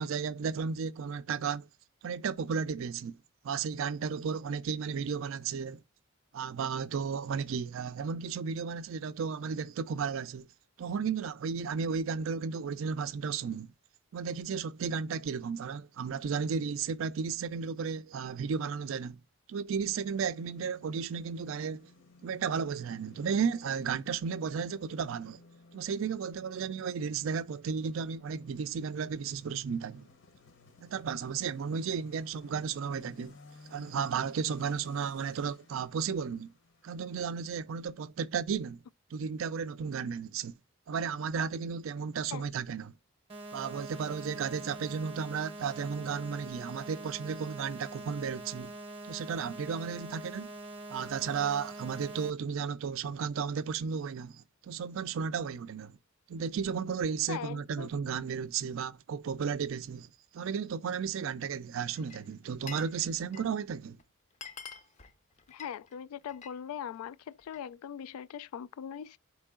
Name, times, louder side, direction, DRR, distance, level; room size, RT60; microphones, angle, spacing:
voice 1, 0.0-1.7 2.0-3.2 3.4-5.8 6.3-10.5 10.8-13.7 14.1-19.2 19.5-21.9 22.2-25.4 25.7-30.1 30.8-33.4 33.7-36.5 36.8-38.8 39.1-40.5 40.9-42.9 43.5-48.7 49.1-50.5 50.9-56.0 56.3-64.0, right 6 dB, 70° right, 0.4 m, -34 dB
sound 1, 20.1-37.5, left 3 dB, 60° left, 0.8 m, -59 dB
sound 2, 43.3-52.3, right 2 dB, 25° right, 0.7 m, -44 dB
voice 2, 57.3-57.9 65.5-69.2, left 8 dB, 90° left, 0.3 m, -41 dB
Glass, 62.0-63.0 63.2-63.6 64.0-64.1 64.3-66.6 66.9-67.7, left 6 dB, 35° left, 0.5 m, -48 dB
4.5 x 3.1 x 3.6 m
head